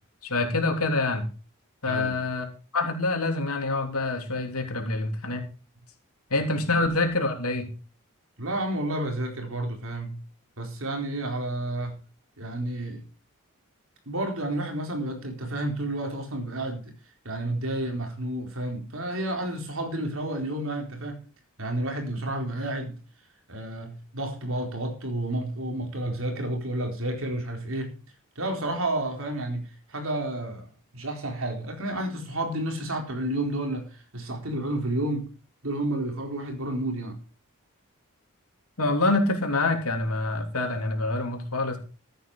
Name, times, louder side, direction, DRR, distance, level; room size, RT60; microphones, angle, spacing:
voice 1, 0.2-1.2 1.8-2.4 2.7-5.4 6.3-7.7 38.8-41.8, left 2 dB, 85° left, 4 dB, 3.3 m, -26 dB
voice 2, 1.8-2.2 6.4-6.5 8.4-10.2 10.6-12.0 12.4-13.0 14.1-16.9 17.2-21.2 21.6-23.0 23.5-27.9 28.4-30.7 30.9-35.3 35.6-37.2, right 1 dB, 65° right, 3 dB, 4.2 m, -31 dB
14.5 x 9.1 x 5.0 m, 0.35 s
head